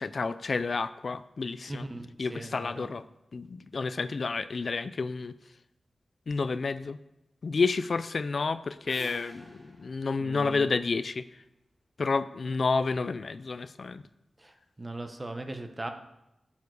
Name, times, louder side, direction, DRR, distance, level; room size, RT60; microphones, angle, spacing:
voice 1, 0.0-1.9 2.2-3.0 3.3-5.3 6.3-7.0 7.4-11.4 12.0-14.0, left 4 dB, 60° left, 14 dB, 0.4 m, -30 dB
voice 2, 1.7-2.9 10.2-10.7 14.4-15.9, right 2 dB, 25° right, 6 dB, 1.1 m, -39 dB
sound 1, 8.8-11.5, left 1 dB, ahead, 3.3 m, -50 dB
12.5 x 7.2 x 4.8 m, 0.91 s
wide cardioid pair, 80°, 0 cm